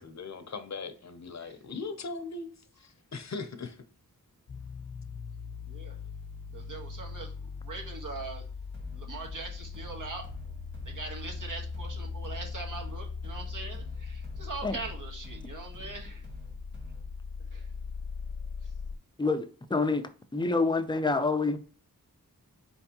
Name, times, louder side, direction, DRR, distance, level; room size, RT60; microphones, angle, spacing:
voice 1, 0.0-3.8, left 4 dB, 50° left, 0.7 m, -39 dB
sound 1, 4.5-19.0, left 5 dB, 90° left, 0.9 m, -40 dB
voice 2, 6.5-8.4 8.9-10.3 10.8-16.2 17.5-17.6, right 3 dB, 60° right, 1.3 m, -41 dB
sound 2, 8.7-17.2, equal, 30° right, 1.7 m, -49 dB
voice 3, 19.2-21.6, left 3 dB, 15° left, 0.4 m, -27 dB
4.6 x 3.4 x 2.9 m
wide cardioid pair, 95°, 36 cm